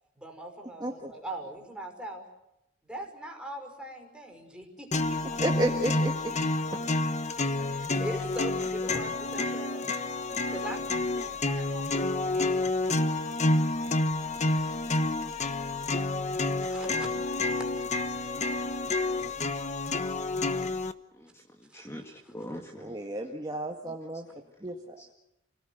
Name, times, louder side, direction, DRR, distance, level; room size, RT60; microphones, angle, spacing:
voice 1, 0.1-2.3 2.8-5.2 7.7-9.9 10.5-10.9 11.1-12.5 14.5-14.9 16.4-17.1 19.8-20.3 21.7-21.9, right 1 dB, 5° right, 5.6 m, -41 dB
voice 2, 0.8-1.1 5.4-6.3 22.8-24.3 24.6-24.8, right 1 dB, 20° right, 1.8 m, -31 dB
sound 1, 4.9-20.9, left 2 dB, 35° left, 1.2 m, -29 dB
voice 3, 21.1-23.0 25.0-25.1, equal, 15° left, 2.0 m, -43 dB
29.0 x 18.0 x 8.0 m
head